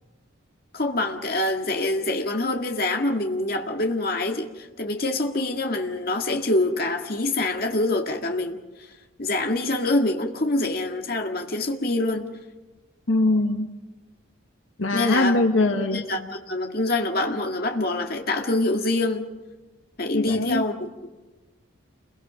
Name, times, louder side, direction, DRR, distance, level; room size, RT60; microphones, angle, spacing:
voice 1, 0.7-8.6 9.2-12.3 14.9-15.4 15.8-19.2 20.0-21.1, left 2 dB, 45° left, 2.0 m, -25 dB
voice 2, 13.1-13.7 14.8-16.0 20.1-20.6, left 2 dB, 75° left, 1.6 m, -22 dB
29.0 x 22.5 x 5.2 m
head